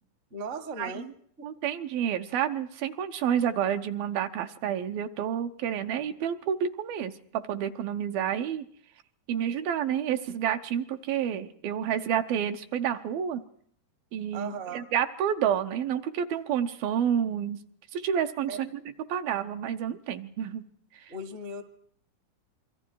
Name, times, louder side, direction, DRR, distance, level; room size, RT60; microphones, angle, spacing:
voice 1, 0.3-1.5 14.3-14.8 18.5-18.7 21.1-21.6, right 3 dB, 35° right, 10 dB, 1.1 m, -37 dB
voice 2, 1.4-8.6 9.3-13.4 14.1-17.6 17.9-18.7 19.1-20.6, right 9 dB, 70° right, 6 dB, 2.6 m, -29 dB
27.0 x 23.5 x 4.7 m, 0.62 s
omnidirectional pair, 4.7 m